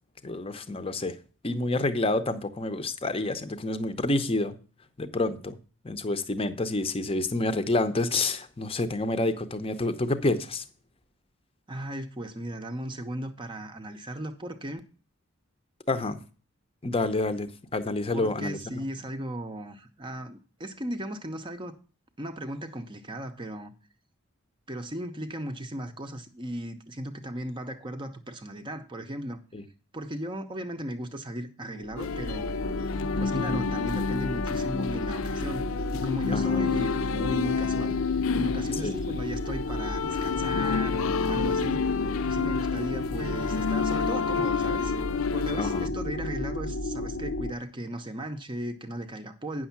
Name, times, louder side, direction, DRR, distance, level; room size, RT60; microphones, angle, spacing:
voice 1, 0.2-1.2 1.4-4.5 5.0-5.6 5.8-10.6 15.9-16.2 16.8-18.8 29.5-29.6 33.3-33.7 36.3-36.7 38.8-39.0 45.5-45.9, left 2 dB, 25° left, 11 dB, 0.7 m, -28 dB
voice 2, 11.7-14.8 18.1-21.7 22.2-23.7 24.7-29.4 29.9-35.7 35.9-38.0 38.3-42.0 42.2-49.7, right 1 dB, 20° right, 7 dB, 0.6 m, -36 dB
sound 1, 31.7-47.5, left 2 dB, 90° left, 0.9 m, -33 dB
sound 2, 32.0-45.9, left 6 dB, 70° left, 0.5 m, -30 dB
9.1 x 6.4 x 5.8 m, 0.37 s
head